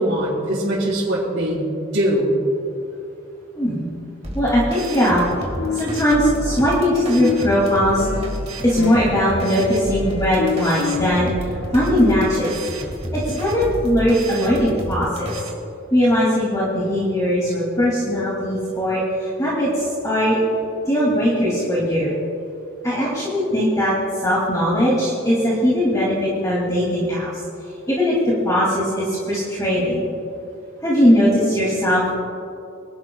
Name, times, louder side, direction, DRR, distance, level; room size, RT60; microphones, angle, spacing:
voice 1, 0.0-2.4, right 1 dB, 65° right, -10 dB, 3.6 m, -21 dB
sound 1, 4.2-15.5, equal, 30° right, 1.8 m, -30 dB
voice 2, 4.3-5.2 5.7-8.1 8.6-11.3 11.7-12.5 13.1-15.3 15.9-20.4 20.8-22.1 22.8-27.3 27.9-30.1 30.8-32.1, equal, 15° left, -7 dB, 2.7 m, -19 dB
sound 2, 5.6-6.9 7.2-12.5, left 7 dB, 85° left, 0.6 m, -29 dB
26.0 x 12.0 x 2.4 m, 2.6 s
head